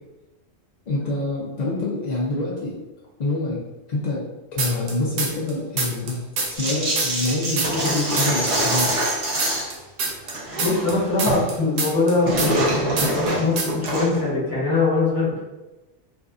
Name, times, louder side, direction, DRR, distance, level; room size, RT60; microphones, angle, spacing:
voice 1, 0.9-2.7 3.2-3.6 3.9-4.3 4.5-6.2 6.5-9.0, left 2 dB, 85° left, -5 dB, 0.3 m, -26 dB
sound 1, 4.6-5.5 5.8-8.5 8.8-12.7 13.0-13.3 13.6-13.9, right 4 dB, 75° right, 0.9 m, -26 dB
sound 2, 6.5-9.7 10.1-11.5 11.7-14.3, right 1 dB, 50° right, 0.4 m, -24 dB
voice 2, 10.4-15.4, left 3 dB, 20° left, -8 dB, 0.8 m, -23 dB
2.5 x 2.4 x 2.3 m, 1.0 s
omnidirectional pair, 1.3 m